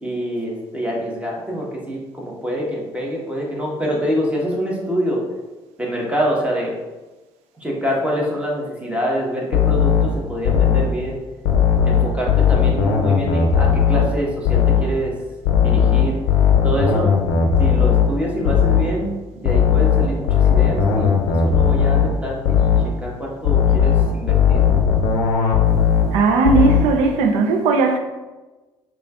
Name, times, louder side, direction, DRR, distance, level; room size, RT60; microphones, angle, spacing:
voice 1, 0.0-5.2 5.8-6.7 7.6-11.2 11.8-15.1 15.6-16.2 16.6-17.1 17.6-21.1 21.4-24.6, equal, 10° right, -3 dB, 1.2 m, -25 dB
sound 1, 9.5-11.0 11.5-14.2 14.5-15.0 15.5-19.0 19.5-22.2 22.5-23.0 23.4-26.2 26.4-27.0, left 7 dB, 85° left, 0.5 m, -17 dB
voice 2, 26.1-28.0, right 4 dB, 75° right, 5 dB, 0.5 m, -17 dB
5.0 x 2.4 x 2.4 m, 1.2 s
hypercardioid pair, 60°, 11 cm